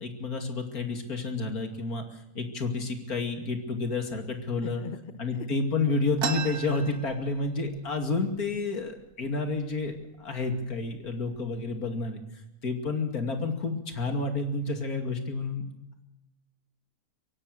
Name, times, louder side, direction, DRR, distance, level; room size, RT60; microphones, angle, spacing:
voice 1, 0.0-4.8 5.2-12.2 12.6-15.7, left 3 dB, 75° left, 5 dB, 3.1 m, -30 dB
voice 2, 4.6-5.5, left 6 dB, 35° left, 11 dB, 1.1 m, -41 dB
sound 1, 6.2-7.8 8.1-8.2 8.5-9.1 9.7-9.9 10.6-10.8 11.2-11.7, right 6 dB, 90° right, 2.0 m, -35 dB
23.5 x 17.5 x 6.8 m, 0.90 s
omnidirectional pair, 1.6 m